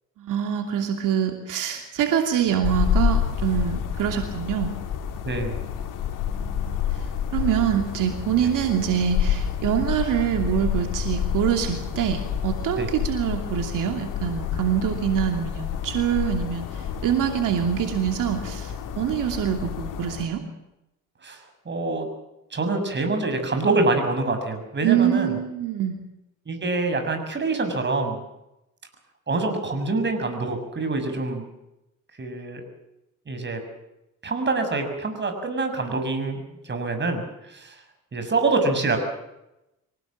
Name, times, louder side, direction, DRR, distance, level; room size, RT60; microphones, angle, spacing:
voice 1, 0.2-4.7 6.3-7.1 7.3-20.4 24.8-26.0, right 9 dB, 85° right, 4 dB, 2.8 m, -25 dB
sound 1, 2.6-20.3, left 8 dB, 90° left, 3.1 m, -29 dB
voice 2, 5.2-5.6 12.8-12.9 21.2-22.1 22.5-25.4 26.5-28.2 29.3-31.4 32.2-32.6 33.3-33.6 34.2-37.2 37.5-37.8 38.1-39.0, right 3 dB, 35° right, 6 dB, 6.5 m, -25 dB
25.0 x 18.0 x 7.5 m, 0.90 s
cardioid pair, 95°, 31 cm